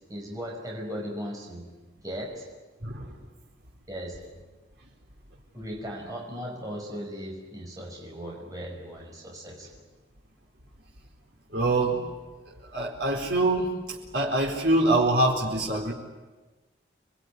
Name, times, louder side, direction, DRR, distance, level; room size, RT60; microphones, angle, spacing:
voice 1, 0.1-1.7 2.0-2.5 3.9-4.3 5.5-9.8, equal, 20° right, -2 dB, 5.6 m, -37 dB
voice 2, 2.8-3.1 11.5-12.1 12.7-15.9, right 2 dB, 70° right, -3 dB, 4.3 m, -25 dB
28.5 x 21.5 x 9.6 m, 1.3 s
head